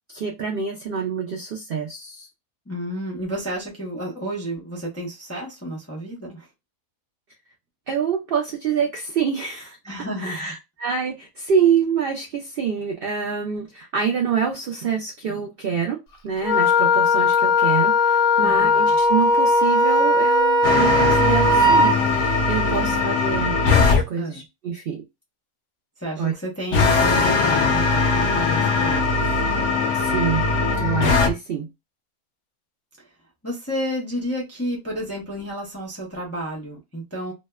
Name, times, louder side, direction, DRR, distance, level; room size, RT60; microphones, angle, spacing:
voice 1, 0.1-2.3 7.9-9.8 10.2-16.0 16.2-23.6 23.8-25.0 26.2-26.3 29.9-30.5 30.8-31.7, right 7 dB, 80° right, 0.5 m, -26 dB
voice 2, 2.7-6.5 9.8-10.5 18.4-19.0 22.8-23.0 24.2-24.5 26.0-29.3 33.0-33.1 33.4-37.3, equal, 25° left, 0.3 m, -31 dB
Wind instrument woodwind instrument, 16.4-21.9, left 2 dB, 90° left, 1.1 m, -18 dB
sound 1, 20.6-24.0 26.7-31.3, left 4 dB, 65° left, 0.8 m, -20 dB
2.7 x 2.1 x 2.2 m
omnidirectional pair, 1.5 m